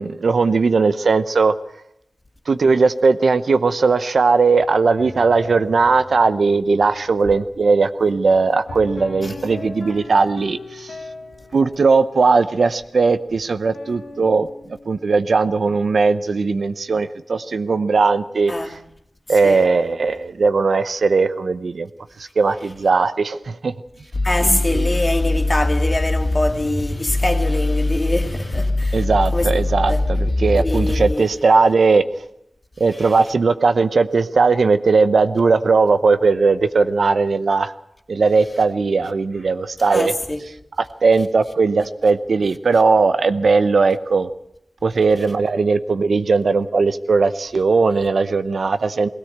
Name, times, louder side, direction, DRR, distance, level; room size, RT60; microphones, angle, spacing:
voice 1, 0.0-1.5 2.5-10.9 11.5-14.5 14.9-18.5 19.3-21.9 22.2-23.7 24.4-24.9 28.9-32.0 32.8-37.7 38.1-40.1 40.8-44.3 44.8-49.1, right 4 dB, 80° right, 0.8 m, -18 dB
sound 1, 5.0-15.8, left 3 dB, 90° left, 1.6 m, -40 dB
voice 2, 18.5-18.8 19.4-19.6 24.2-29.0 29.3-30.0 30.5-31.3 32.9-33.2 39.9-40.4, left 1 dB, 25° left, 2.3 m, -24 dB
sound 2, 24.1-31.1, left 2 dB, 60° left, 2.1 m, -22 dB
19.5 x 17.0 x 8.0 m
wide cardioid pair, 75°, 0 cm